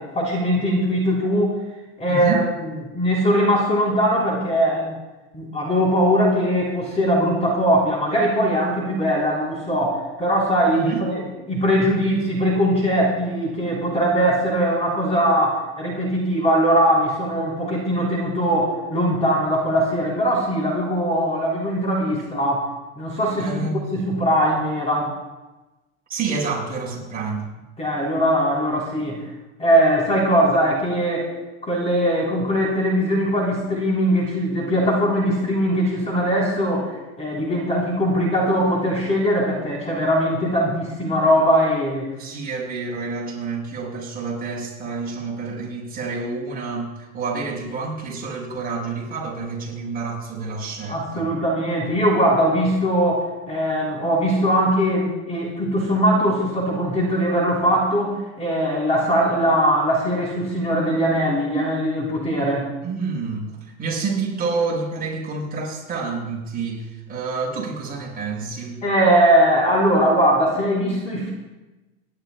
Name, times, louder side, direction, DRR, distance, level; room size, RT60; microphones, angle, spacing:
voice 1, 0.0-1.5 2.0-2.4 2.9-4.9 5.3-22.6 23.0-23.5 23.7-25.1 27.8-29.2 29.6-31.3 31.6-36.9 37.2-42.1 50.9-62.7 68.8-71.3, equal, 20° left, -3 dB, 3.9 m, -20 dB
voice 2, 2.1-2.4 10.7-11.0 23.4-23.8 26.1-27.5 42.2-51.3 62.8-68.8, right 4 dB, 25° right, -3 dB, 5.0 m, -28 dB
28.5 x 11.5 x 2.3 m, 1.1 s
supercardioid pair, 130°, 36 cm